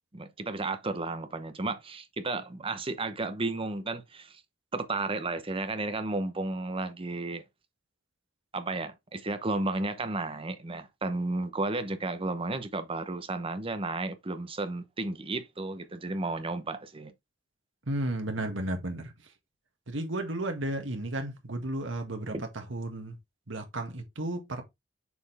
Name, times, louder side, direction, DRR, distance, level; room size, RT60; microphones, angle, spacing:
voice 1, 0.1-4.4 4.7-7.4 8.5-17.1 22.3-22.4, right 2 dB, 30° right, 0.9 m, -33 dB
voice 2, 17.9-19.1 19.9-23.2 23.5-24.6, right 1 dB, 85° right, 1.8 m, -33 dB
7.0 x 4.4 x 3.4 m
head